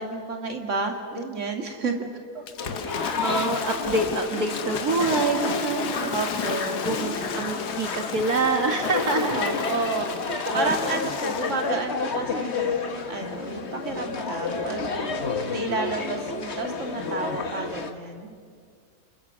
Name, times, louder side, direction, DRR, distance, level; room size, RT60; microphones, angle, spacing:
voice 1, 0.0-2.1 6.1-6.8 9.4-10.1 10.5-18.3, right 3 dB, 45° right, 3 dB, 2.6 m, -31 dB
Waves surf / Splash splatter, 2.5-11.7, left 7 dB, 90° left, 1.7 m, -33 dB
sound 1, 2.6-17.9, left 4 dB, 45° left, 1.6 m, -30 dB
voice 2, 3.0-6.1 6.8-9.4 10.5-10.8, right 3 dB, 70° right, 3 dB, 2.2 m, -26 dB
29.5 x 28.0 x 6.3 m, 2.1 s
omnidirectional pair, 1.7 m